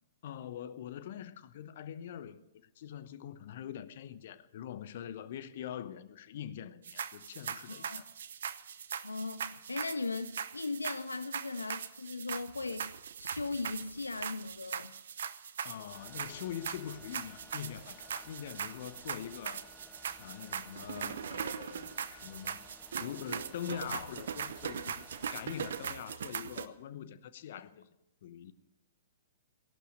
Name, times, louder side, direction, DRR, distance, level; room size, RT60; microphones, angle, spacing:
voice 1, 0.2-2.4 2.8-8.1 15.6-19.7 20.2-22.6 23.0-25.1 25.3-27.9 28.2-28.5, left 10 dB, 50° left, 0.9 m, -43 dB
sound 1, 6.8-26.7, right 7 dB, 60° right, 0.8 m, -41 dB
voice 2, 7.7-8.0 9.0-12.9 13.2-14.9, left 3 dB, 80° left, 0.5 m, -38 dB
sound 2, 15.9-26.0, left 2 dB, 10° left, 1.4 m, -57 dB
17.0 x 11.5 x 6.5 m
figure-of-eight pair, 110°, 0 cm